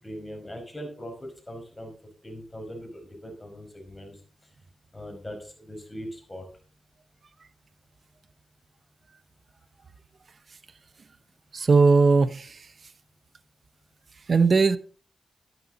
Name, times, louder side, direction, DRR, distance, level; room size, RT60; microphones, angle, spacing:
voice 1, 0.0-1.9 2.2-4.2 4.9-6.4, equal, 20° left, 3 dB, 5.0 m, -40 dB
voice 2, 11.5-12.7 14.3-14.8, right 4 dB, 55° right, 13 dB, 0.6 m, -19 dB
11.0 x 10.5 x 3.9 m, 0.42 s
cardioid pair, 75°, 0 cm